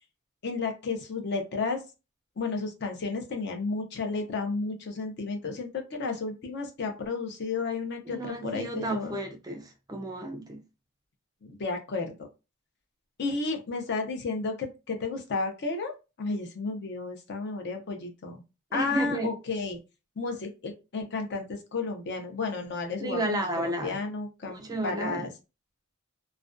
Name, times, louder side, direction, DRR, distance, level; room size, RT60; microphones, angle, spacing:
voice 1, 0.4-1.8 2.4-9.2 11.4-12.3 13.2-18.4 18.7-19.8 20.2-25.3, left 4 dB, 55° left, 0.5 m, -32 dB
voice 2, 8.1-10.6 18.7-19.3 23.0-24.0 24.4-25.3, right 1 dB, 15° right, 0.3 m, -32 dB
2.3 x 2.2 x 2.4 m
head